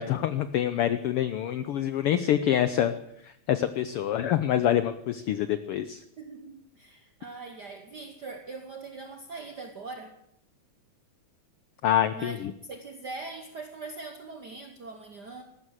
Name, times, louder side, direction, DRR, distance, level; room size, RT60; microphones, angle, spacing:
voice 1, 0.0-2.9 3.2-6.0 11.8-12.5, left 11 dB, 80° left, 12 dB, 1.2 m, -26 dB
voice 2, 6.2-10.1 12.1-12.4 12.6-15.4, right 3 dB, 65° right, 6 dB, 1.0 m, -41 dB
14.5 x 12.5 x 7.4 m, 0.74 s
omnidirectional pair, 3.4 m